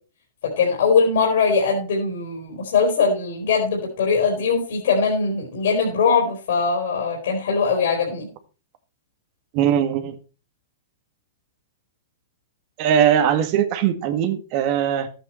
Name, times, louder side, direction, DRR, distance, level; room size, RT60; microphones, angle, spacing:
voice 1, 0.4-8.3, left 5 dB, 70° left, 3.8 m, -21 dB
voice 2, 9.5-10.1 12.8-15.1, right 9 dB, 40° right, 1.8 m, -20 dB
12.5 x 8.9 x 4.4 m
hypercardioid pair, 140°, 0 cm